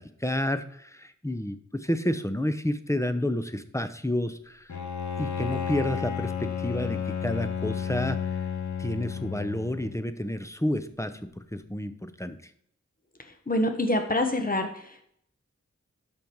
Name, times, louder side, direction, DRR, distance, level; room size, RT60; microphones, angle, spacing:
voice 1, 0.0-4.8 5.2-8.2 8.8-12.4, left 1 dB, 10° left, 10 dB, 0.8 m, -30 dB
Bowed string instrument, 4.7-10.0, left 7 dB, 80° left, 0.9 m, -32 dB
voice 2, 13.5-15.2, left 1 dB, 30° left, 5 dB, 1.5 m, -26 dB
12.5 x 5.3 x 4.7 m, 0.68 s
wide cardioid pair, 40°, 29 cm